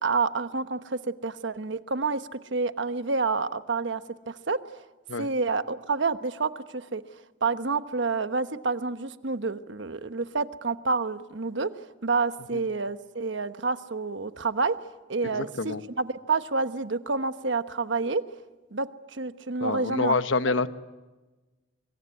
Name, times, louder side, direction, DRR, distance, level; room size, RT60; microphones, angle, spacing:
voice 1, 0.0-4.0 4.3-4.6 5.2-7.0 7.4-11.7 12.0-14.7 15.1-18.2 18.7-20.2, right 4 dB, 70° right, 11 dB, 1.1 m, -28 dB
voice 2, 15.3-15.8 19.6-20.7, left 3 dB, 90° left, 12 dB, 1.1 m, -27 dB
24.5 x 22.5 x 9.5 m, 1.2 s
head